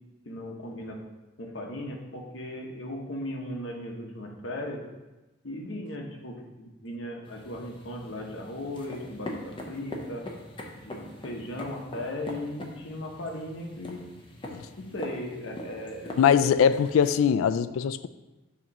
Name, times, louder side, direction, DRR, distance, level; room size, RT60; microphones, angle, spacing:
voice 1, 0.2-1.0 1.4-4.8 5.4-10.2 10.8-14.0 14.8-16.2, left 1 dB, 65° left, 0 dB, 1.0 m, -37 dB
sound 1, 7.2-17.1, left 1 dB, 25° left, 0.7 m, -43 dB
voice 2, 16.2-18.1, left 7 dB, 80° left, 14 dB, 0.3 m, -22 dB
7.2 x 3.0 x 5.3 m, 1.1 s
head